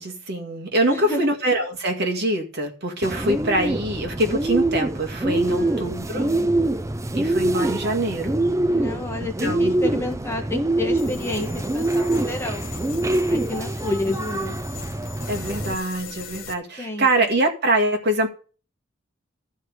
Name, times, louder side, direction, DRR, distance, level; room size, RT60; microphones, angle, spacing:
voice 1, 0.0-6.3 7.1-8.4 9.4-9.8 15.3-18.3, right 1 dB, 55° right, 2.0 m, -24 dB
voice 2, 0.9-1.2 5.5-6.5 8.7-12.7 13.3-14.6 16.8-17.1, left 2 dB, 15° left, 1.5 m, -30 dB
Bird, 3.0-15.7, right 1 dB, 15° right, 0.5 m, -24 dB
sound 1, 11.0-16.5, left 6 dB, 80° left, 1.3 m, -40 dB
13.5 x 4.9 x 8.0 m
head